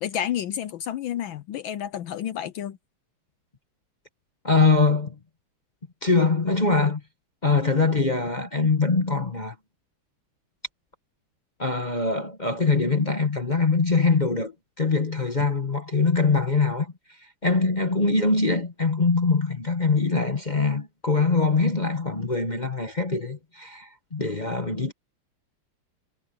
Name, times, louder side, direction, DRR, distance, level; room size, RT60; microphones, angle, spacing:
voice 1, 0.0-2.8, left 10 dB, 75° left, 1.4 m, -30 dB
voice 2, 4.4-5.1 6.0-7.0 7.4-9.5 11.6-16.9 17.4-24.9, left 4 dB, 25° left, 1.0 m, -23 dB
omnidirectional pair, 2.3 m